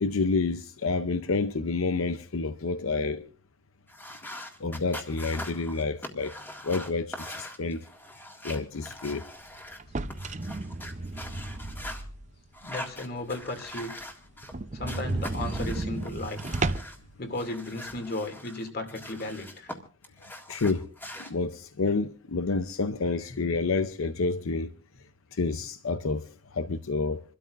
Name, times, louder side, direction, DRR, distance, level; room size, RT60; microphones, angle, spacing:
voice 1, 0.0-3.3 4.6-6.3 6.6-7.9 8.4-9.3 20.5-20.9 21.2-24.7 25.3-27.2, left 3 dB, 85° left, 0.7 m, -29 dB
sound 1, 3.9-9.8 10.1-12.0 12.5-14.5 14.8-17.0 17.3-19.7 20.0-21.3, left 1 dB, 10° left, 1.7 m, -42 dB
sound 2, 9.8-12.4 12.8-12.9 13.3-13.4 13.7-13.8 14.0-14.1 14.4-17.1, right 2 dB, 35° right, 0.6 m, -33 dB
voice 2, 12.6-14.1 14.7-16.4 17.2-19.7, left 2 dB, 50° left, 2.6 m, -35 dB
28.0 x 13.0 x 2.5 m
head